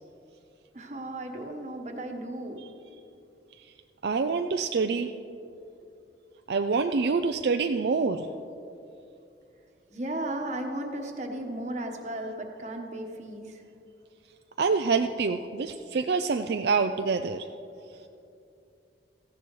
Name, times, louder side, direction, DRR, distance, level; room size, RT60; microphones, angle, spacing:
voice 1, 0.7-2.6 9.9-13.6, right 1 dB, 40° right, 3 dB, 1.2 m, -35 dB
voice 2, 4.0-5.1 6.5-8.3 14.6-17.5, right 4 dB, 65° right, 6 dB, 0.4 m, -26 dB
17.0 x 15.0 x 3.2 m, 2.7 s
head